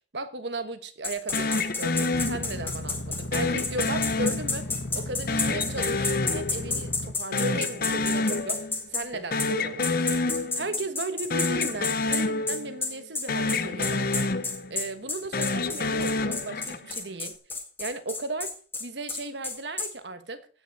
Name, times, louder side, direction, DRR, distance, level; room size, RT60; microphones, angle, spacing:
voice 1, 0.1-4.7 4.9-8.6 8.9-10.2 10.6-14.3 14.7-17.4 17.8-20.5, right 2 dB, 70° right, 1.3 m, -36 dB
sound 1, 1.0-9.1 9.4-9.5 9.8-19.9, left 3 dB, 10° left, 2.0 m, -30 dB
sound 2, 1.3-2.8 3.3-4.9 5.3-7.1 7.3-8.9 9.1-10.8 11.2-13.0 13.3-14.9 15.3-17.0, left 3 dB, 50° left, 0.8 m, -28 dB
sound 3, 2.1-7.1, left 1 dB, 85° left, 1.2 m, -36 dB
16.0 x 6.2 x 4.3 m
head